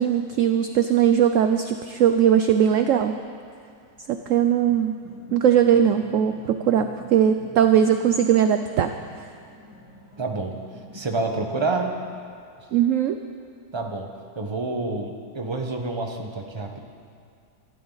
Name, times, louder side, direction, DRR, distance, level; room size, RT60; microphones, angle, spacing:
voice 1, 0.0-3.1 4.1-4.9 5.3-8.9 12.7-13.2, right 9 dB, 65° right, 7 dB, 0.8 m, -20 dB
sound 1, 4.7-12.1, left 1 dB, 90° left, 3.9 m, -46 dB
voice 2, 10.2-10.5 10.9-12.0 13.7-14.1 14.3-16.8, right 3 dB, 20° right, 3 dB, 1.1 m, -28 dB
25.0 x 12.5 x 4.1 m, 2.4 s
omnidirectional pair, 1.7 m